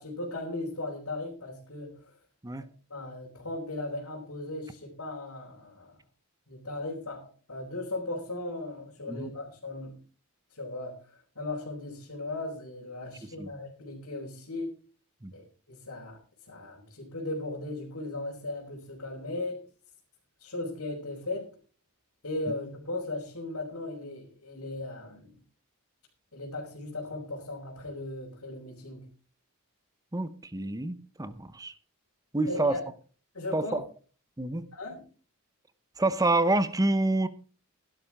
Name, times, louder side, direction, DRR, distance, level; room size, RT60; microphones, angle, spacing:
voice 1, 0.0-2.0 2.9-5.9 6.5-10.0 10.5-14.7 15.3-16.2 16.5-19.6 20.4-21.5 22.2-25.4 26.3-29.0 32.5-32.8 33.3-33.8 34.7-35.0, left 2 dB, 75° left, 4.4 m, -37 dB
voice 2, 30.1-31.7 32.3-32.8 33.5-33.8 34.4-34.6 36.0-37.3, right 2 dB, 15° right, 0.8 m, -27 dB
16.5 x 12.0 x 3.6 m
head